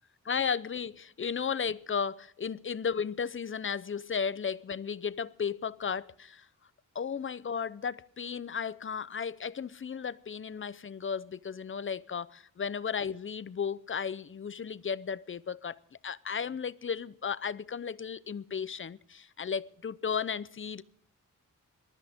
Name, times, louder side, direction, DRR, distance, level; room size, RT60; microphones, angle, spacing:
voice 1, 0.2-6.5 6.9-20.8, left 6 dB, 40° left, 0.7 m, -34 dB
22.0 x 13.5 x 3.6 m
wide cardioid pair, 100°, 32 cm